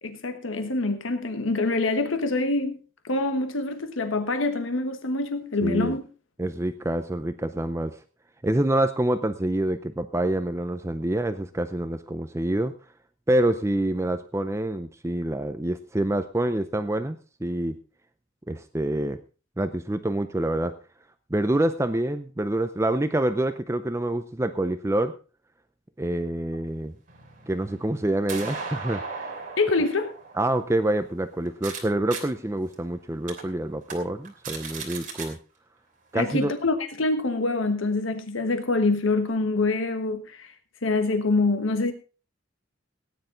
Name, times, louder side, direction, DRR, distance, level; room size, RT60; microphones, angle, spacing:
voice 1, 0.0-2.8 3.0-6.0 29.6-30.1 36.1-40.5 40.8-41.9, left 3 dB, 80° left, 8 dB, 1.3 m, -25 dB
voice 2, 5.6-6.0 6.4-8.0 8.4-12.7 13.3-17.8 18.5-19.2 19.6-20.7 21.3-25.2 26.0-26.9 27.5-29.0 30.4-35.4 36.1-36.5, right 1 dB, 15° right, 10 dB, 0.5 m, -26 dB
sound 1, 27.1-31.8 32.1-32.2 32.7-32.8 33.3-33.4 33.8-33.9 34.2-35.3, right 4 dB, 40° right, 3.0 m, -37 dB
17.5 x 10.0 x 3.8 m, 0.34 s
head